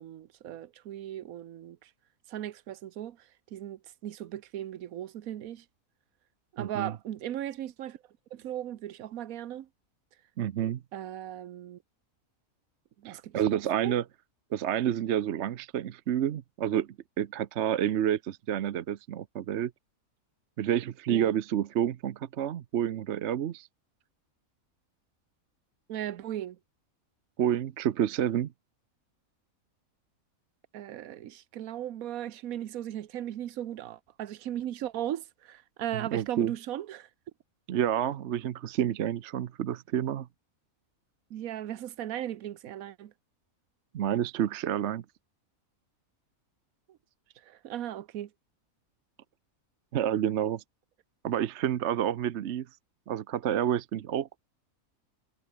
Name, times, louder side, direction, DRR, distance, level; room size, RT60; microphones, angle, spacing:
voice 1, 0.0-1.9 2.3-5.6 6.5-8.0 8.3-9.7 10.9-11.8 13.0-14.0 21.1-21.3 25.9-26.6 30.7-37.1 41.3-43.1 46.9-47.0 47.4-48.3, right 11 dB, 80° right, 1.3 m, -37 dB
voice 2, 6.6-6.9 10.4-10.8 13.0-14.0 14.5-16.9 17.2-19.7 20.6-23.7 27.4-28.5 36.1-36.5 37.7-40.3 43.9-45.0 49.9-50.6 51.2-52.7 53.1-54.4, right 10 dB, 60° right, 0.9 m, -29 dB
omnidirectional pair, 1.5 m